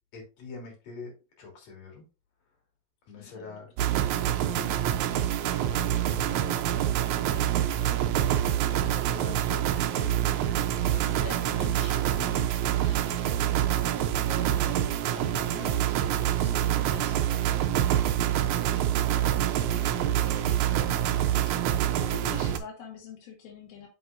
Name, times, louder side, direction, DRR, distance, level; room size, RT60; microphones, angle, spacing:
voice 1, 0.1-1.1 1.4-2.0 3.1-3.7 4.5-8.0 8.7-11.3 19.7-20.0, left 4 dB, 50° left, 0 dB, 4.2 m, -45 dB
voice 2, 3.2-3.6 10.9-13.2 13.8-15.9 16.2-18.3 19.0-23.9, left 6 dB, 80° left, 0 dB, 3.7 m, -46 dB
sound 1, 3.8-22.6, right 11 dB, 85° right, 1.7 m, -26 dB
8.4 x 6.9 x 2.5 m, 0.31 s
omnidirectional pair, 4.2 m